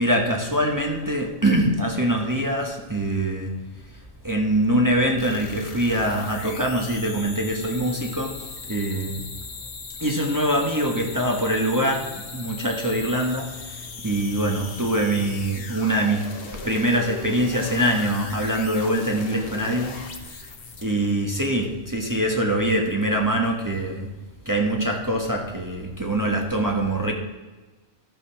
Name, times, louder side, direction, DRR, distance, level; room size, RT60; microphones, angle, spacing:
voice 1, 0.0-3.5 4.2-9.2 10.0-16.3 16.6-20.0 20.2-20.5 20.8-24.1 24.4-27.1, right 1 dB, 15° right, 0 dB, 1.3 m, -24 dB
sound 1, 5.2-21.1, left 4 dB, 55° left, 1.3 m, -38 dB
13.0 x 6.8 x 5.8 m, 1.2 s
omnidirectional pair, 1.2 m